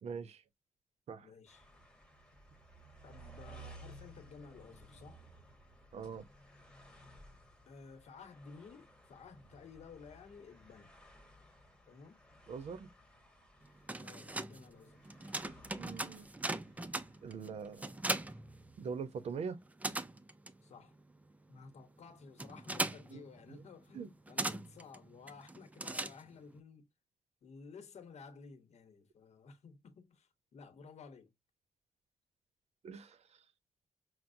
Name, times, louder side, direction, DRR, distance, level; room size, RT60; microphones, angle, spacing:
voice 1, 0.0-0.4 1.1-1.3 5.9-6.2 12.5-12.9 15.7-16.3 17.2-17.9 18.8-19.6 23.1-23.2 23.5-23.6 23.9-24.1 32.8-33.2, right 6 dB, 65° right, 0.6 m, -42 dB
voice 2, 1.2-1.7 3.0-5.2 7.7-10.9 11.9-12.2 14.0-15.2 20.6-20.9 21.5-26.9 27.4-31.3, left 5 dB, 70° left, 1.0 m, -54 dB
sound 1, 1.5-18.4, right 1 dB, 5° left, 1.0 m, -58 dB
sound 2, 13.6-19.2 19.5-26.6, right 2 dB, 15° right, 0.3 m, -40 dB
5.8 x 2.1 x 2.6 m
wide cardioid pair, 175°, 12 cm